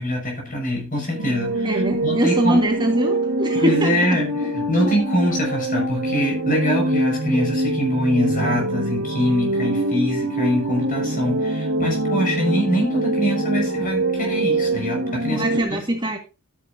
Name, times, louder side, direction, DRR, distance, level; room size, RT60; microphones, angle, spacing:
voice 1, 0.0-2.6 3.5-15.8, equal, 40° left, 5.8 m, -24 dB
sound 1, 1.1-15.6, right 1 dB, 70° right, 2.6 m, -24 dB
voice 2, 1.6-4.2 15.3-16.2, right 1 dB, 20° right, 1.7 m, -22 dB
12.5 x 9.7 x 2.7 m
head